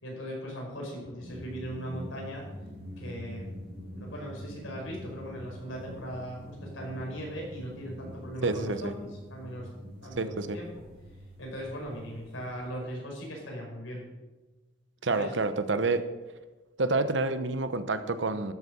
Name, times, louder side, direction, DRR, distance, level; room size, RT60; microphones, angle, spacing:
voice 1, 0.0-2.4 3.0-3.5 3.9-9.7 10.0-10.7 11.4-14.0 15.0-15.3 18.3-18.4, equal, 90° left, -1 dB, 4.8 m, -39 dB
sound 1, 1.2-12.7, equal, 50° right, 2.3 m, -45 dB
voice 2, 8.4-8.9 10.2-10.6 15.0-16.0 16.8-18.5, right 3 dB, 70° right, 11 dB, 0.9 m, -28 dB
12.5 x 8.1 x 6.1 m, 1.2 s
head